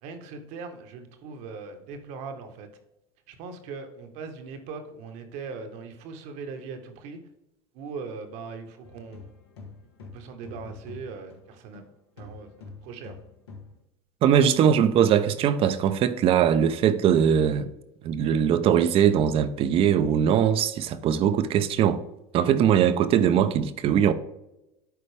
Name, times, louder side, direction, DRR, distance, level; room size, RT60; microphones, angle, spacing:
voice 1, 0.0-2.7 3.3-7.2 7.7-9.3 10.0-11.8 12.2-12.5 12.8-13.2, right 5 dB, 65° right, 1.4 m, -40 dB
sound 1, 8.8-11.9 12.2-13.8, left 3 dB, 90° left, 1.8 m, -45 dB
voice 2, 14.2-17.7 18.0-22.0 22.3-24.1, right 9 dB, 45° right, 0.7 m, -21 dB
11.0 x 4.2 x 3.4 m
hypercardioid pair, 95°, 13 cm